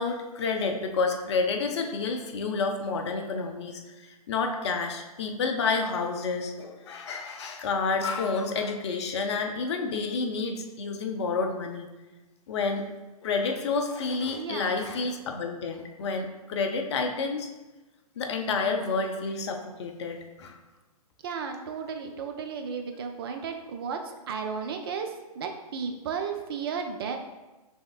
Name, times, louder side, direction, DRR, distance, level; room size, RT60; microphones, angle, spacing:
voice 1, 0.0-11.9 12.5-12.8 13.2-17.5 18.2-20.5, left 4 dB, 45° left, 4 dB, 0.5 m, -29 dB
voice 2, 14.4-14.8 21.2-27.2, right 6 dB, 40° right, 4 dB, 0.4 m, -34 dB
5.2 x 3.5 x 2.3 m, 1.1 s
figure-of-eight pair, 125°, 20 cm